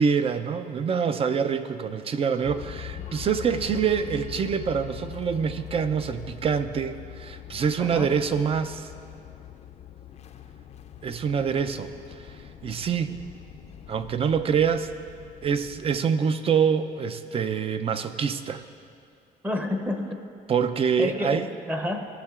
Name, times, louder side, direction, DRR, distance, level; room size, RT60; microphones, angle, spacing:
voice 1, 0.0-8.9 11.0-13.2 13.9-14.9 15.4-18.6 20.5-21.5, right 6 dB, 35° right, 10 dB, 0.4 m, -26 dB
sound 1, 2.4-16.0, left 11 dB, 40° left, 0.5 m, -42 dB
voice 2, 7.8-8.1 19.4-20.2 21.0-22.1, left 1 dB, 10° right, 4 dB, 0.8 m, -29 dB
17.5 x 6.6 x 2.4 m, 2.4 s
cardioid pair, 110°, 17 cm